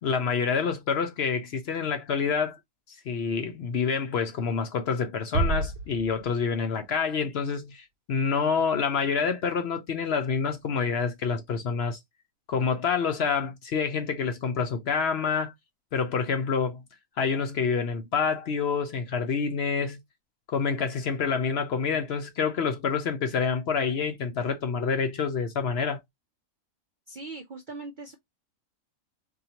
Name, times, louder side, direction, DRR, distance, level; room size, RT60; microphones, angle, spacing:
voice 1, 0.0-2.6 3.1-12.0 12.5-15.5 15.9-16.8 17.2-20.0 20.5-26.0, left 5 dB, 60° left, 0.8 m, -27 dB
sound 1, 5.3-7.0, right 2 dB, 80° right, 1.1 m, -30 dB
voice 2, 27.1-28.2, right 3 dB, 55° right, 0.5 m, -40 dB
3.9 x 2.8 x 2.8 m
omnidirectional pair, 1.4 m